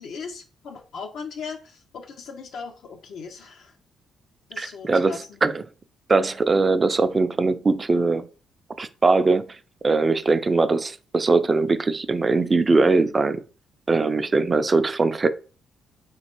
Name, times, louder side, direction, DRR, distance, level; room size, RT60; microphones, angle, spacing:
voice 1, 0.0-3.7 4.5-5.4, left 5 dB, 70° left, 0.5 m, -38 dB
voice 2, 4.6-5.2 5.4-5.6 6.1-8.3 8.8-9.6 9.8-13.4 13.9-15.3, right 3 dB, 30° right, 0.3 m, -21 dB
3.2 x 3.0 x 2.9 m
cardioid pair, 90°, 0 cm